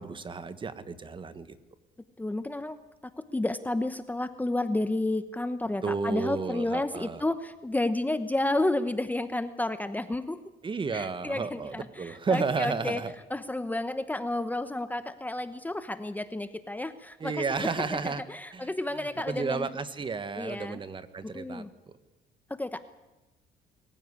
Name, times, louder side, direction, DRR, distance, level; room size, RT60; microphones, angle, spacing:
voice 1, 0.0-1.6 5.8-7.2 10.6-13.1 17.2-18.2 18.5-22.0, right 4 dB, 30° right, 13 dB, 1.5 m, -32 dB
voice 2, 2.2-2.8 3.2-10.4 10.9-13.0 13.3-17.7 18.3-19.7 20.4-20.8 21.2-21.7 22.5-22.9, left 2 dB, 10° left, 11 dB, 1.0 m, -31 dB
23.0 x 15.5 x 9.8 m, 1.1 s
cardioid pair, 110°, 17 cm